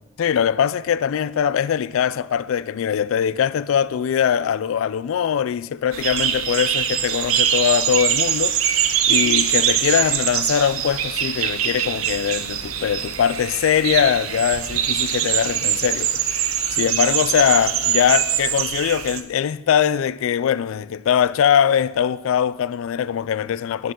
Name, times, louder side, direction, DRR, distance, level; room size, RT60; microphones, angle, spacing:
voice 1, 0.2-23.9, left 8 dB, 70° left, 0.3 m, -22 dB
sound 1, 5.9-19.2, right 9 dB, 85° right, 0.7 m, -23 dB
11.0 x 11.0 x 3.7 m
head